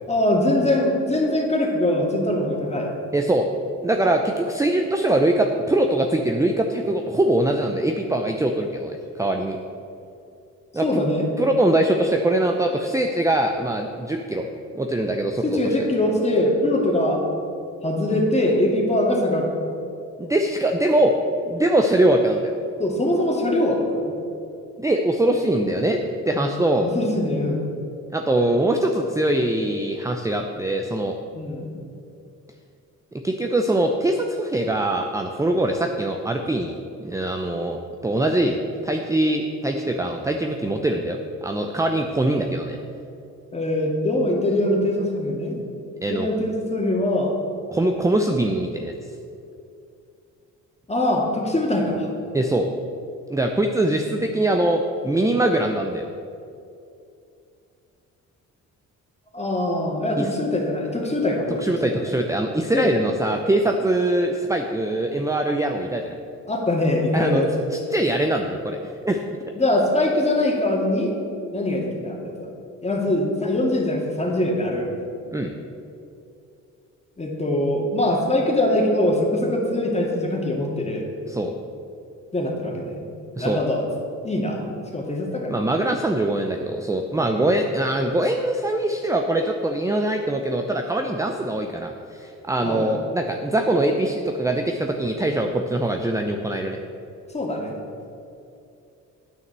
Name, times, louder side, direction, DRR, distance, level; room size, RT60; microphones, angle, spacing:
voice 1, 0.1-2.9 10.8-11.3 15.4-17.3 17.8-19.5 22.8-24.1 26.3-27.6 31.3-31.7 43.5-45.6 46.1-47.3 50.9-52.1 59.3-62.2 62.7-62.9 66.5-67.7 69.6-71.1 71.5-72.5 72.8-74.9 77.2-81.1 82.3-83.0 83.4-83.8 84.2-84.6 84.9-85.6 87.1-87.3 92.6-93.0 97.3-97.7, left 1 dB, 20° left, 0 dB, 2.1 m, -23 dB
voice 2, 3.1-3.5 3.8-9.6 10.7-11.0 11.4-14.5 14.7-15.6 20.2-21.1 21.5-22.5 24.8-26.0 26.3-26.9 28.1-31.1 33.2-36.7 37.0-42.8 46.0-46.3 47.7-48.9 52.3-52.7 53.3-56.0 60.2-60.3 61.6-66.2 67.1-67.4 67.9-68.8 69.0-69.4 75.3-75.5 81.3-81.5 83.4-83.6 85.5-96.8, right 1 dB, 10° right, 3 dB, 0.6 m, -22 dB
9.4 x 6.4 x 6.8 m, 2.6 s
cardioid pair, 90°, 30 cm